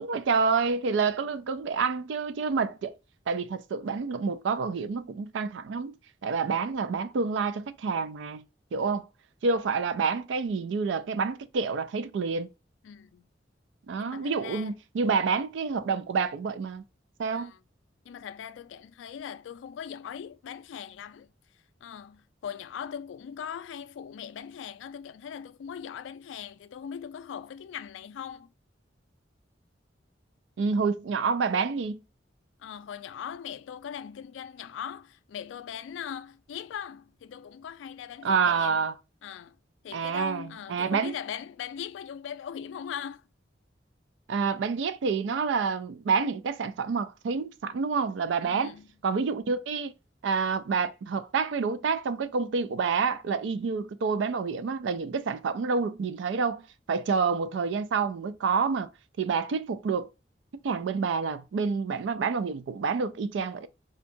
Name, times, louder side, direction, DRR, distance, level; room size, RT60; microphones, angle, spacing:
voice 1, 0.0-2.9 3.3-5.9 6.2-8.4 8.7-9.1 9.4-12.5 13.9-16.8 17.2-17.5 30.6-32.0 38.2-38.9 39.9-41.1 44.3-48.7 49.0-49.9 50.2-58.9 59.2-60.1 60.6-63.7, right 5 dB, 75° right, 0.4 m, -28 dB
voice 2, 12.8-13.2 14.0-14.7 17.3-17.6 18.1-21.3 21.8-28.5 32.6-38.8 39.2-39.6 39.8-43.2 48.4-48.9, left 8 dB, 90° left, 0.3 m, -40 dB
2.7 x 2.2 x 2.5 m
head